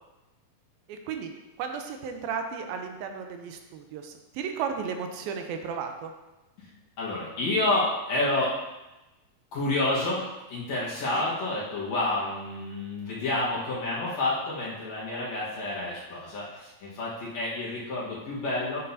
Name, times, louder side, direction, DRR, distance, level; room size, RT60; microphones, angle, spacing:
voice 1, 0.9-1.3 1.6-6.1 11.1-11.3, right 6 dB, 80° right, 5 dB, 2.5 m, -34 dB
voice 2, 7.0-8.6 9.5-10.2 10.5-18.9, left 2 dB, 55° left, -7 dB, 2.3 m, -29 dB
7.7 x 7.5 x 2.8 m, 1.0 s
omnidirectional pair, 4.2 m